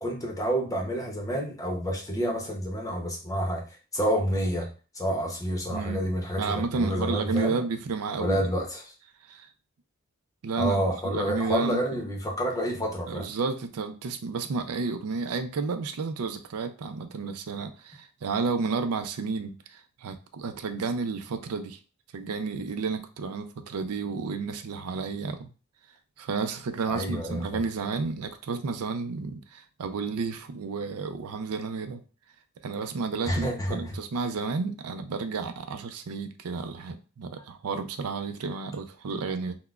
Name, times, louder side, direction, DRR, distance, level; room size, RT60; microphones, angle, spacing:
voice 1, 0.0-3.6 3.9-4.7 4.9-7.6 8.2-8.9 10.6-13.3 26.9-27.4 33.3-33.8, equal, 15° left, 1 dB, 0.7 m, -29 dB
voice 2, 5.7-6.1 6.4-8.4 9.3-9.5 10.4-12.0 13.1-21.8 22.1-25.5 26.2-32.0 32.6-39.6, right 4 dB, 85° right, 8 dB, 0.4 m, -31 dB
5.8 x 2.1 x 2.3 m, 0.36 s
head